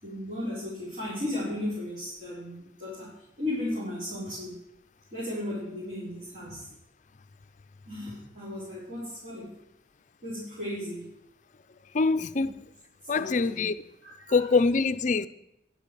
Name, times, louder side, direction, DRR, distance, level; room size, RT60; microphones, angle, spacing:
voice 1, 0.0-4.6 5.1-6.7 7.9-9.5 10.2-11.1 13.1-13.6 14.0-14.5, left 1 dB, 50° right, 3.9 m, -35 dB
voice 2, 11.9-12.6 13.1-13.8 14.3-15.3, left 4 dB, 45° left, 0.5 m, -24 dB
10.5 x 8.5 x 6.8 m
head